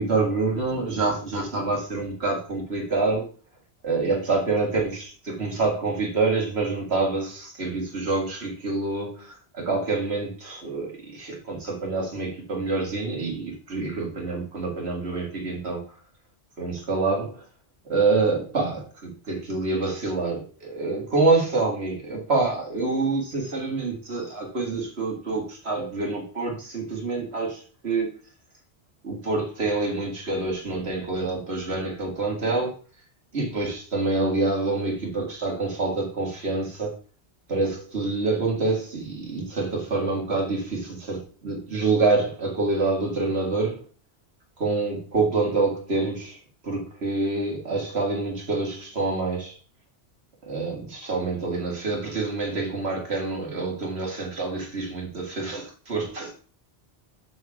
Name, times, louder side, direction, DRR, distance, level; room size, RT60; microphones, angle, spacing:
voice 1, 0.0-3.2 3.8-15.8 16.6-17.4 17.9-18.8 19.3-28.1 29.0-32.7 33.3-36.9 37.5-43.8 44.6-46.4 46.6-49.5 50.5-56.3, right 3 dB, 70° right, -1 dB, 2.4 m, -26 dB
6.9 x 6.1 x 3.6 m, 0.40 s
omnidirectional pair, 1.1 m